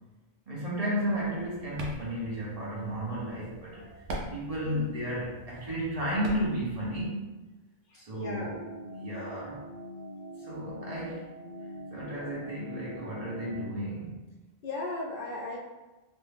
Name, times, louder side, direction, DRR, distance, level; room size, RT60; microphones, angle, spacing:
voice 1, 0.5-3.9 4.3-7.3 7.9-8.6 8.9-9.6 10.4-11.3 11.9-14.2, equal, 40° right, -5 dB, 0.8 m, -33 dB
sound 1, 1.1-7.1, right 1 dB, 85° right, 0.9 m, -44 dB
voice 2, 4.6-4.9 7.9-8.5 14.6-15.6, left 2 dB, 60° left, -3 dB, 0.7 m, -37 dB
sound 2, 8.2-13.7, equal, 85° left, 1.1 m, -44 dB
3.1 x 2.2 x 3.3 m, 1.1 s
omnidirectional pair, 1.1 m